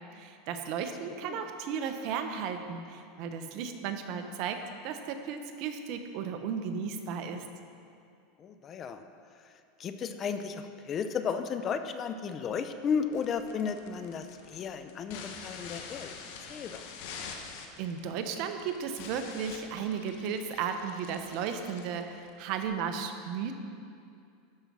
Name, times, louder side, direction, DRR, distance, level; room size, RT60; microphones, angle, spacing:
voice 1, 0.1-7.4 17.8-23.5, right 6 dB, 55° right, 6 dB, 0.9 m, -35 dB
voice 2, 8.4-9.0 9.8-16.1 16.5-16.8, left 6 dB, 30° left, 9 dB, 0.6 m, -34 dB
sound 1, 13.1-22.7, left 5 dB, 65° left, 1.1 m, -46 dB
12.0 x 5.3 x 6.1 m, 2.4 s
supercardioid pair, 130°, 0 cm